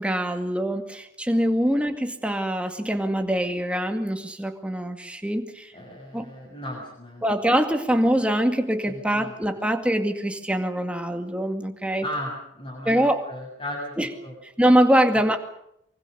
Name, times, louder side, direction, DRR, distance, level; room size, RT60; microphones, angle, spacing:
voice 1, 0.0-5.7 6.1-6.3 7.2-12.0 12.9-13.3 14.0-14.1 14.4-15.4, equal, 5° right, 5 dB, 2.2 m, -23 dB
voice 2, 5.7-7.3 8.8-9.6 12.0-13.8 14.2-14.3, left 1 dB, 30° left, -4 dB, 7.1 m, -36 dB
24.5 x 24.0 x 6.8 m, 0.75 s
head